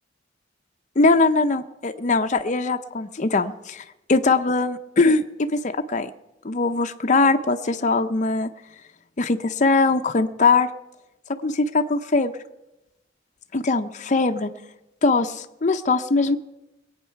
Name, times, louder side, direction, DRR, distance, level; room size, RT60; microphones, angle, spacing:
voice 1, 1.0-3.8 4.1-6.1 6.4-8.5 9.2-10.7 11.4-12.3 13.5-14.5 15.0-16.4, left 3 dB, 40° left, 7 dB, 0.6 m, -21 dB
21.0 x 8.8 x 5.7 m, 0.95 s
head